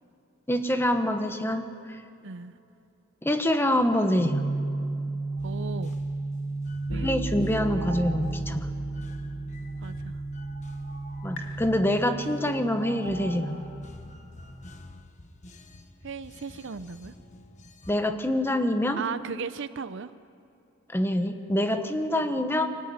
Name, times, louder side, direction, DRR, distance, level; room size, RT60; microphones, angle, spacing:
voice 1, 0.5-2.0 3.2-4.4 6.9-8.7 11.2-13.6 17.9-19.0 20.9-22.7, left 1 dB, 10° left, 7 dB, 1.2 m, -26 dB
sound 1, 4.2-13.8, right 2 dB, 65° left, 2.1 m, -33 dB
sound 2, 5.2-5.9 7.6-8.3 9.7-9.8 10.4-11.3 12.2-12.3 12.8-13.7, right 3 dB, 90° right, 4.5 m, -45 dB
sound 3, 5.4-17.9, left 1 dB, 35° left, 1.3 m, -49 dB
voice 2, 5.4-6.0 6.9-7.1 9.8-10.2 16.0-17.1 19.0-20.1, right 5 dB, 60° right, 14 dB, 0.6 m, -36 dB
24.5 x 15.5 x 9.5 m, 2.7 s
head